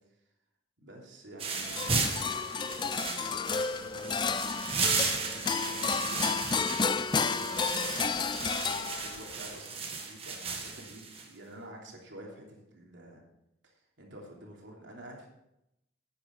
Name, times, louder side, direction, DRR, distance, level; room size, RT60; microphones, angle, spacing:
voice 1, 0.8-4.6 5.0-6.3 7.2-13.2 13.6-15.3, right 1 dB, 75° right, -1 dB, 3.1 m, -49 dB
sound 1, 1.4-11.3, right 4 dB, 30° right, 1.6 m, -35 dB
sound 2, 1.6-9.3, left 5 dB, 25° left, 0.3 m, -31 dB
11.0 x 9.1 x 5.4 m, 0.85 s
head